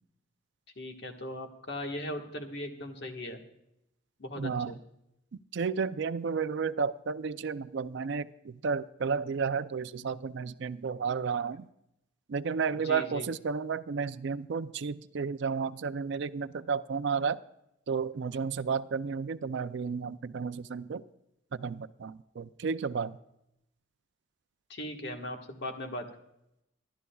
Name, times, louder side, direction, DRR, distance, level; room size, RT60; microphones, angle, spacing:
voice 1, 0.8-3.4 4.2-4.8 12.7-13.3 24.7-26.0, left 1 dB, 55° left, 3 dB, 1.5 m, -38 dB
voice 2, 4.4-4.7 5.5-11.7 12.3-17.4 17.9-21.0 21.5-23.2, right 5 dB, 60° right, 14 dB, 0.4 m, -32 dB
26.0 x 12.5 x 2.3 m, 0.82 s
head